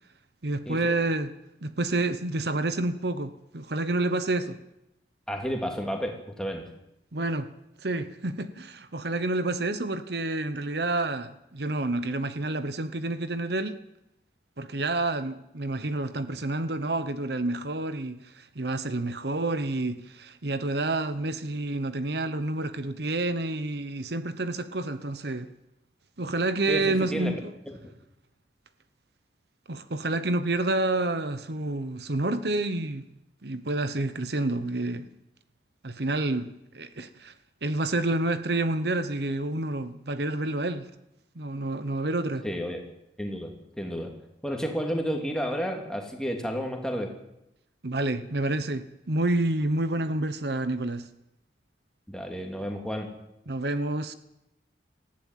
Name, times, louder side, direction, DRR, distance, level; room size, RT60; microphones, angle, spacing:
voice 1, 0.4-1.3 1.6-4.6 7.1-7.5 7.8-13.8 14.6-25.5 26.2-27.5 29.7-33.1 33.4-35.1 35.8-37.3 37.6-40.9 41.3-42.4 47.8-51.1 53.5-54.1, right 2 dB, 65° right, 1.0 m, -29 dB
voice 2, 5.3-6.7 26.7-27.3 42.4-42.8 43.2-44.1 44.4-47.1 52.1-53.1, equal, 5° left, 2.8 m, -31 dB
19.5 x 14.5 x 9.2 m
head